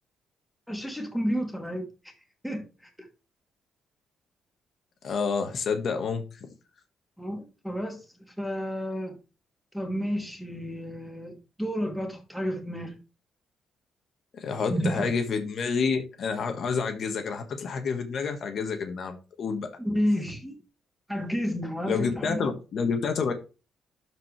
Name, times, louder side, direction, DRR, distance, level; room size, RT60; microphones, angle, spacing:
voice 1, 0.7-2.1 2.4-2.9 7.2-8.0 8.4-9.2 9.7-13.0 14.7-15.1 19.8-20.5 21.1-22.4, equal, ahead, 2.4 m, -31 dB
voice 2, 5.0-6.5 14.3-19.7 21.9-23.3, left 5 dB, 60° left, 1.5 m, -29 dB
12.5 x 4.7 x 3.3 m
cardioid pair, 90°, 0 cm